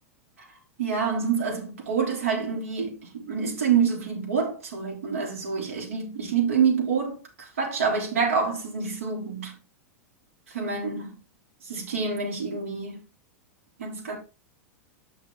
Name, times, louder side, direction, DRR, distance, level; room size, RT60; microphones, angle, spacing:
voice 1, 0.8-9.5 10.5-11.1 11.6-13.0 13.8-14.2, right 6 dB, 65° right, 3.3 m, -27 dB
9.1 x 6.0 x 3.6 m
figure-of-eight pair, 90°, 8 cm